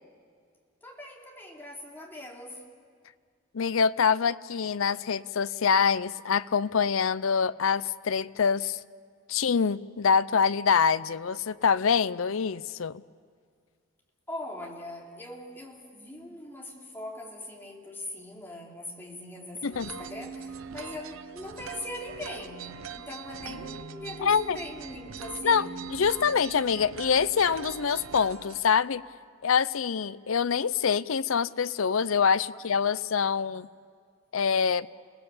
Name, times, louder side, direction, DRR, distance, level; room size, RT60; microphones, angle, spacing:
voice 1, 0.8-2.7 14.3-26.0, left 1 dB, 10° left, 3.0 m, -41 dB
voice 2, 3.5-8.8 9.3-13.0 19.6-19.9 24.2-24.6 25.4-29.0 29.4-33.7 34.3-34.9, left 6 dB, 80° left, 0.6 m, -25 dB
sound 1, 19.7-28.6, right 6 dB, 85° right, 0.9 m, -41 dB
29.5 x 19.5 x 7.0 m
head